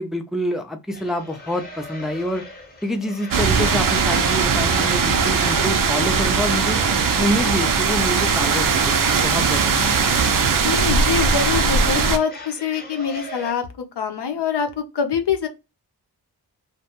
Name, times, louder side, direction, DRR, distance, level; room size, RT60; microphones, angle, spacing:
voice 1, 0.0-2.4 2.8-6.8 7.2-10.4, equal, ahead, 0.4 m, -27 dB
sound 1, 0.9-13.5, left 1 dB, 25° left, 0.8 m, -40 dB
sound 2, 3.3-12.2, right 5 dB, 55° right, 0.5 m, -19 dB
voice 2, 10.6-15.5, left 7 dB, 80° left, 0.7 m, -24 dB
2.4 x 2.2 x 2.8 m
wide cardioid pair, 85°, 40 cm